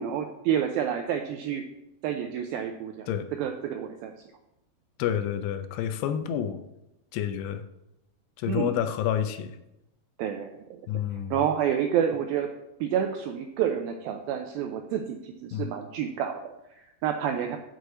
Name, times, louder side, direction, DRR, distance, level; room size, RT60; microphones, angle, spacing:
voice 1, 0.0-1.7 2.0-3.1 3.4-4.1 8.5-8.8 10.2-10.8 11.3-12.5 12.8-17.6, right 9 dB, 85° right, 5 dB, 2.1 m, -29 dB
voice 2, 5.0-6.6 7.1-7.6 8.4-9.6 10.9-11.3 15.5-15.7, left 9 dB, 80° left, 9 dB, 2.6 m, -29 dB
6.5 x 6.3 x 6.8 m, 0.91 s
omnidirectional pair, 4.9 m